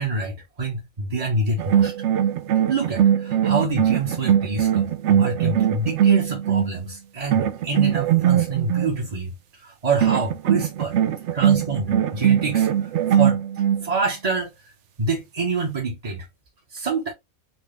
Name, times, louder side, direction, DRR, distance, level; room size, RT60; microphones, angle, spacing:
voice 1, 0.0-1.9 2.7-11.0 11.3-13.4 13.8-14.7 15.0-16.3 16.7-17.1, right 3 dB, 30° right, 1.0 m, -27 dB
sound 1, 1.6-6.8 7.3-8.9 10.0-13.9, right 10 dB, 65° right, 0.8 m, -20 dB
4.2 x 2.4 x 3.1 m
omnidirectional pair, 1.5 m